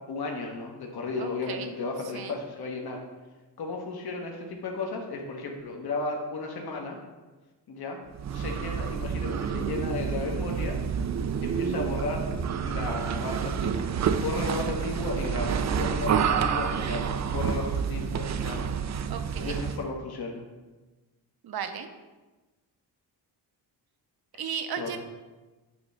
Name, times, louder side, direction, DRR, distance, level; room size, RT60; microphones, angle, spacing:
voice 1, 0.1-3.0 3.6-7.0 7.7-8.0 8.3-10.8 11.4-12.2 12.6-18.7 19.4-20.4 24.8-25.0, left 3 dB, 60° left, 1 dB, 1.3 m, -34 dB
voice 2, 1.2-1.7 2.1-2.4 19.1-19.6 21.4-21.9 24.4-25.0, right 7 dB, 60° right, 8 dB, 0.8 m, -35 dB
sound 1, 8.1-19.9, right 7 dB, 40° right, 0.4 m, -29 dB
7.9 x 3.1 x 5.4 m, 1.2 s
cardioid pair, 80°, 43 cm